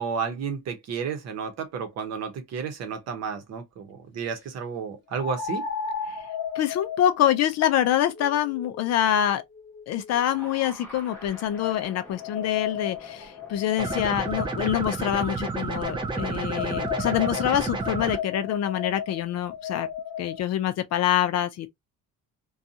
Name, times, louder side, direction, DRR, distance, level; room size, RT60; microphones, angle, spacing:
voice 1, 0.0-5.6, right 6 dB, 50° right, 0.8 m, -32 dB
sound 1, 2.6-2.7 5.2-10.3 11.1-14.8 15.8-20.4, left 8 dB, 35° left, 0.8 m, -35 dB
voice 2, 6.6-9.4 9.9-19.9 20.2-21.7, left 11 dB, 50° left, 0.4 m, -25 dB
sound 2, 10.1-16.4, equal, 5° left, 0.9 m, -49 dB
sound 3, 13.8-18.2, right 3 dB, 15° right, 0.3 m, -30 dB
2.6 x 2.3 x 2.6 m
cardioid pair, 170°, 33 cm